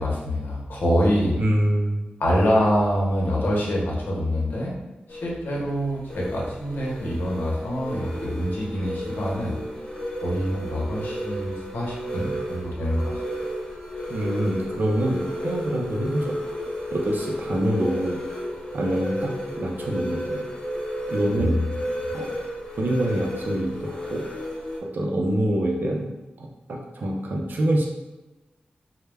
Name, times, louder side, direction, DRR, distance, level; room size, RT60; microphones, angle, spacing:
voice 1, 0.0-1.4 2.2-4.7 5.1-9.6 10.2-13.2 21.3-22.2, equal, 75° left, -3 dB, 0.7 m, -25 dB
voice 2, 1.4-2.0 14.1-16.3 16.9-18.2 18.7-20.5 21.1-21.6 22.1-22.3 22.8-24.2 24.9-26.1 26.4-27.9, right 1 dB, 65° right, 0 dB, 0.5 m, -25 dB
sound 1, 5.1-24.8, equal, 20° left, 0.6 m, -33 dB
2.1 x 2.1 x 3.3 m, 1.1 s
wide cardioid pair, 90°, 3 cm